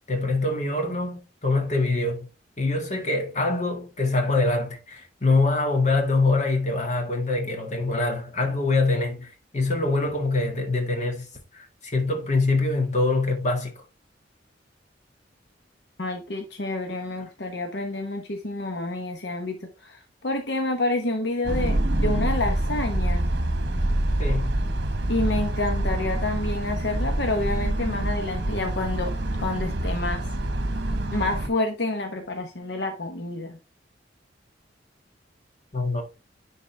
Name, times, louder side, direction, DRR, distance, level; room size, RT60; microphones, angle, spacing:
voice 1, 0.1-2.3 2.6-11.3 11.5-13.8 24.2-24.5 35.7-36.0, left 2 dB, 40° left, 1.8 m, -24 dB
voice 2, 16.0-23.3 25.1-29.1 29.4-30.2 31.1-33.6, left 2 dB, 65° left, 1.0 m, -28 dB
sound 1, 21.4-31.5, right 1 dB, 60° right, 1.3 m, -26 dB
10.0 x 4.0 x 3.3 m
head